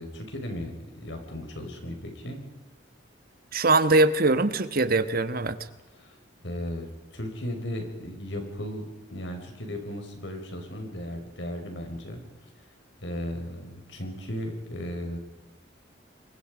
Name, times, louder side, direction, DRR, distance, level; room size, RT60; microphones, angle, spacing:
voice 1, 0.0-2.4 6.0-6.2 6.4-12.2 13.0-15.2, equal, 75° left, 4 dB, 5.5 m, -36 dB
voice 2, 3.5-5.6, right 2 dB, 55° right, 11 dB, 1.5 m, -22 dB
27.5 x 23.0 x 5.2 m, 1.0 s
head